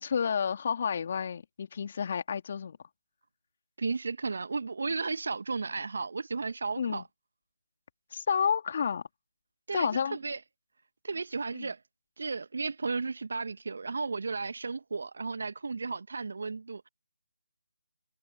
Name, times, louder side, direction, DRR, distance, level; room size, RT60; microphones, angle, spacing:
voice 1, 0.0-2.8 6.8-7.0 8.1-9.0 9.7-10.2 11.5-11.7, left 7 dB, 40° left, 2.5 m, -30 dB
voice 2, 3.8-7.0 9.7-10.4 11.0-11.8 12.2-16.9, right 4 dB, 55° right, 0.9 m, -34 dB
figure-of-eight pair, 155°, 0 cm